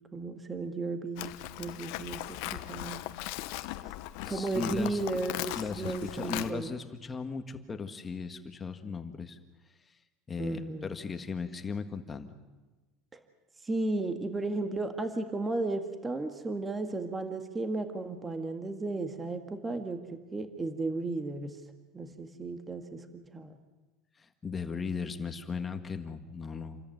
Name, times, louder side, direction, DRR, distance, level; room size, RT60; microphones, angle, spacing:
voice 1, 0.1-3.0 4.3-6.7 10.4-10.9 13.1-13.2 13.6-21.6 21.9-23.6, right 2 dB, 15° right, 7 dB, 1.8 m, -34 dB
Livestock farm animals working animals, 1.2-6.5, left 17 dB, 70° left, 1.0 m, -38 dB
voice 2, 4.2-5.2 5.5-9.4 9.9-10.0 10.3-12.3 24.2-26.8, left 5 dB, 20° left, 8 dB, 1.7 m, -37 dB
28.0 x 13.5 x 9.5 m, 1.2 s
supercardioid pair, 130°, 0 cm